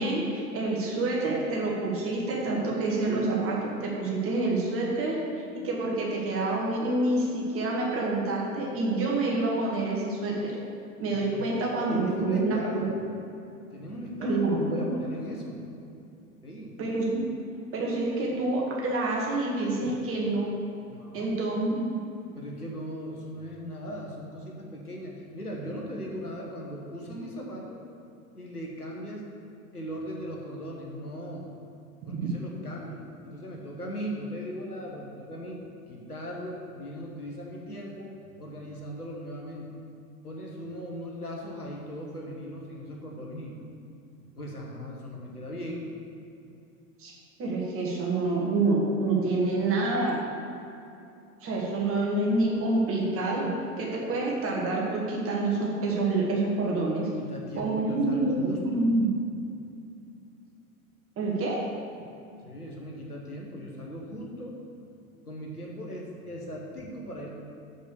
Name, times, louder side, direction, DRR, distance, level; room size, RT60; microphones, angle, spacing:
voice 1, 0.0-5.2 5.6-10.6 11.0-12.9 14.2-15.0 16.8-17.2 17.7-20.5 21.1-22.0 32.1-32.2 47.0-47.1 47.4-50.2 51.4-53.5 53.8-57.1 57.6-59.1 61.2-61.6, right 2 dB, 30° right, -3 dB, 1.9 m, -27 dB
voice 2, 11.1-13.0 13.4-14.4 14.7-15.6 16.4-16.8 20.9-21.5 22.3-27.8 28.3-29.3 29.7-31.5 32.1-35.6 35.9-39.7 40.2-43.6 44.4-45.9 57.0-58.9 62.4-64.6 65.3-67.3, equal, 90° left, -2 dB, 1.4 m, -38 dB
6.7 x 5.0 x 6.9 m, 2.6 s
figure-of-eight pair, 85°, 44 cm